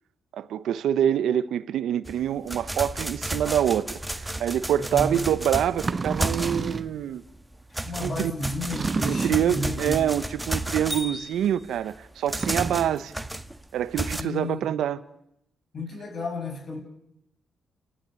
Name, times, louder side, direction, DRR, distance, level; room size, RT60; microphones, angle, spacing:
voice 1, 0.4-7.2 8.0-8.3 9.0-13.1 13.7-15.0, right 10 dB, 75° right, 1.1 m, -26 dB
sound 1, 2.0-6.9 7.3-14.2, right 1 dB, 10° right, 1.5 m, -33 dB
voice 2, 4.8-5.3 7.8-10.1 14.2-14.6 15.7-16.8, left 2 dB, 55° left, 7.3 m, -32 dB
sound 2, 5.7-7.0 8.7-9.6 12.3-12.9, right 4 dB, 40° right, 1.0 m, -30 dB
29.5 x 14.0 x 9.2 m
supercardioid pair, 60°, 0 cm